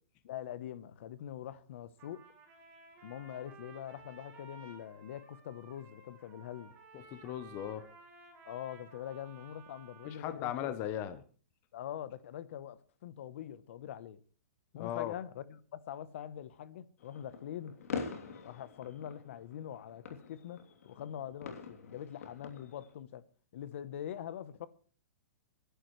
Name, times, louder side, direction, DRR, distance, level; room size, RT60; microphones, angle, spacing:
voice 1, 0.2-2.2 3.0-6.7 8.4-10.8 11.7-14.2 14.7-17.8 18.4-23.2 23.5-24.7, left 10 dB, 55° left, 0.9 m, -44 dB
Trumpet, 2.0-10.4, right 5 dB, 25° right, 7.4 m, -56 dB
voice 2, 7.1-7.8 10.0-11.2 14.7-15.1, left 11 dB, 25° left, 0.7 m, -37 dB
sound 1, 17.0-22.9, left 5 dB, 75° left, 3.0 m, -45 dB
26.0 x 11.5 x 3.2 m
hypercardioid pair, 165°, 8 cm